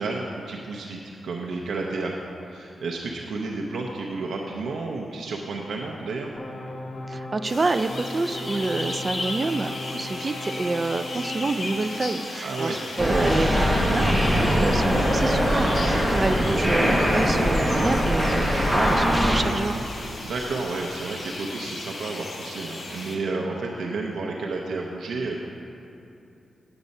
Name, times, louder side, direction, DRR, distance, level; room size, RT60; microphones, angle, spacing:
voice 1, 0.0-2.1 2.5-6.3 12.4-12.8 20.2-25.4, right 3 dB, 85° right, -1 dB, 0.7 m, -31 dB
sound 1, 6.4-12.2, left 1 dB, 30° left, 0.8 m, -36 dB
voice 2, 7.1-19.8, right 3 dB, 30° right, 11 dB, 0.3 m, -28 dB
sound 2, 7.4-23.2, left 2 dB, 50° left, 1.2 m, -36 dB
sound 3, 13.0-19.4, equal, ahead, 1.2 m, -21 dB
8.8 x 8.2 x 5.3 m, 2.7 s
wide cardioid pair, 125°, 0 cm